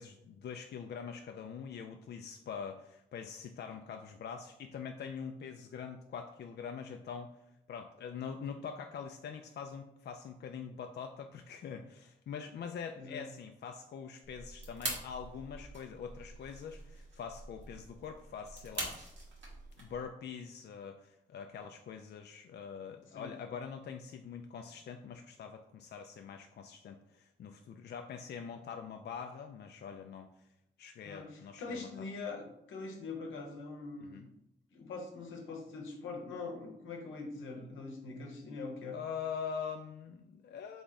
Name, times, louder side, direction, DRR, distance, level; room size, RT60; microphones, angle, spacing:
voice 1, 0.0-7.4 7.7-19.0 19.8-30.3 30.8-31.9 34.0-34.3 38.9-40.8, left 6 dB, 60° left, 5 dB, 0.4 m, -44 dB
voice 2, 12.9-13.2 23.1-23.3 31.0-34.3 34.7-39.0, left 3 dB, 85° left, 2 dB, 0.9 m, -43 dB
sound 1, 14.2-20.0, right 2 dB, 70° right, 1.4 m, -44 dB
3.6 x 3.4 x 4.0 m, 0.82 s
supercardioid pair, 45°, 20 cm